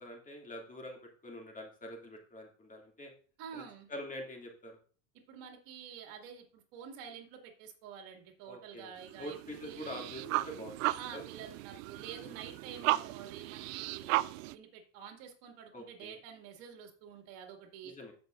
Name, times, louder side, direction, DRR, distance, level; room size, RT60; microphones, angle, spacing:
voice 1, 0.0-3.1 3.5-3.6 3.9-4.8 8.5-11.2 12.1-12.3 15.7-16.2 17.8-18.1, left 1 dB, 20° left, 0 dB, 2.5 m, -46 dB
voice 2, 3.4-3.9 5.3-9.4 9.6-9.8 11.0-17.9, right 8 dB, 60° right, 3 dB, 2.3 m, -48 dB
sound 1, 9.0-14.5, right 18 dB, 80° right, 0.5 m, -35 dB
15.0 x 5.9 x 2.5 m, 0.41 s
supercardioid pair, 115°, 39 cm